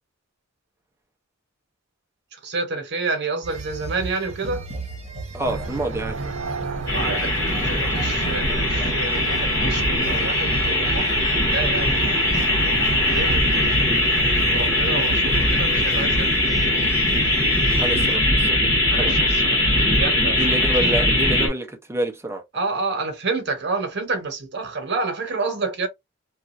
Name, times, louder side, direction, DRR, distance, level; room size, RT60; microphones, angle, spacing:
voice 1, 2.3-4.7 6.9-12.1 13.0-16.9 18.9-20.5 20.8-21.0 22.5-25.9, right 3 dB, 60° right, 1.0 m, -29 dB
sound 1, 3.4-18.2, right 3 dB, 30° right, 1.0 m, -35 dB
voice 2, 5.3-6.3 17.8-18.7 18.9-19.1 20.2-22.4, right 1 dB, 15° right, 0.6 m, -28 dB
sound 2, 5.4-13.4, right 3 dB, 85° right, 0.6 m, -33 dB
sound 3, 6.9-21.5, left 1 dB, 20° left, 1.7 m, -20 dB
3.0 x 2.5 x 2.5 m
head